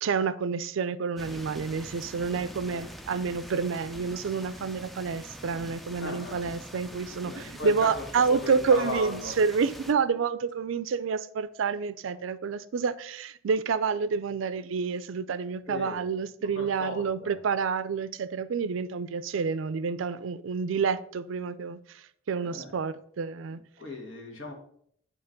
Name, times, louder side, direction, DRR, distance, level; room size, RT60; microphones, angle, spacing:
voice 1, 0.0-23.6, right 5 dB, 75° right, 0.4 m, -29 dB
sound 1, 1.2-9.9, equal, ahead, 0.3 m, -44 dB
voice 2, 6.0-6.4 7.2-8.0 8.3-9.4 15.7-16.0 16.4-17.4 22.4-22.7 23.8-24.5, left 2 dB, 70° left, 1.5 m, -37 dB
8.1 x 3.0 x 5.1 m
head